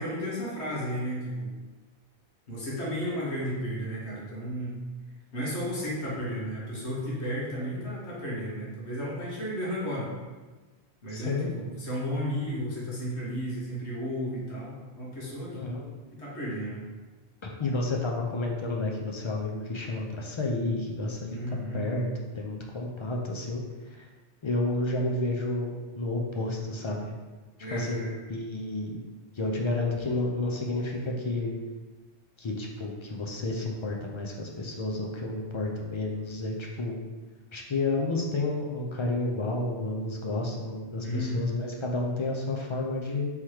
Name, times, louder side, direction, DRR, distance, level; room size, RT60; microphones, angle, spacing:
voice 1, 0.0-1.5 2.5-4.7 5.3-10.1 11.0-15.6 16.1-16.8 21.3-21.8 27.6-28.1 41.0-41.6, equal, 85° left, -6 dB, 1.6 m, -33 dB
voice 2, 11.1-11.5 15.5-15.9 17.4-24.1 24.4-27.1 27.7-28.0 28.3-29.0 29.3-31.5 32.4-37.0 37.5-43.3, left 2 dB, 50° left, 0 dB, 0.3 m, -31 dB
3.7 x 3.0 x 4.6 m, 1.3 s
omnidirectional pair, 1.1 m